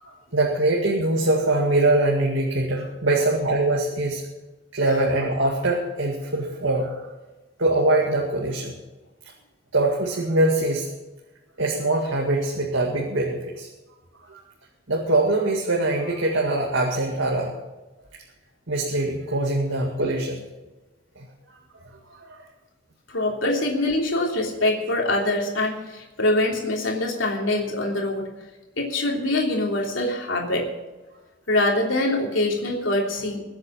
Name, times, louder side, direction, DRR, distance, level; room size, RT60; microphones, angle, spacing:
voice 1, 0.0-4.2 4.7-7.1 7.6-8.8 9.7-10.9 11.6-13.7 14.3-14.4 14.9-17.5 18.1-18.2 18.7-20.4 21.2-21.3 22.2-22.4, right 2 dB, 85° right, 0 dB, 2.1 m, -23 dB
voice 2, 23.1-28.3 28.8-30.7 31.5-33.4, left 1 dB, 90° left, 0 dB, 3.3 m, -24 dB
22.0 x 8.1 x 5.8 m, 1.1 s
head